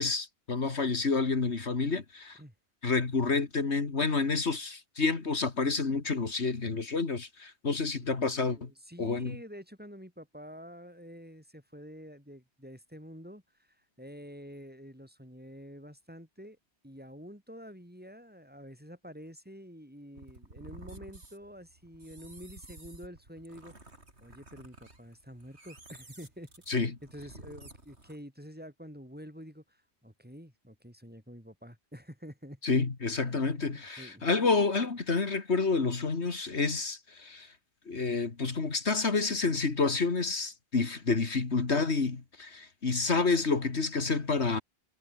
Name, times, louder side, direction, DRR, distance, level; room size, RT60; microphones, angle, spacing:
voice 1, 0.0-2.4 2.8-8.7 9.0-9.4 26.7-26.9 32.6-37.5 37.9-44.6, left 4 dB, 75° left, 2.5 m, -29 dB
voice 2, 8.0-16.6 16.8-23.7 24.2-32.8 33.1-34.2, equal, 10° right, 7.1 m, -48 dB
sound 1, 20.2-28.2, right 2 dB, 75° right, 5.1 m, -52 dB
omnidirectional pair, 1.1 m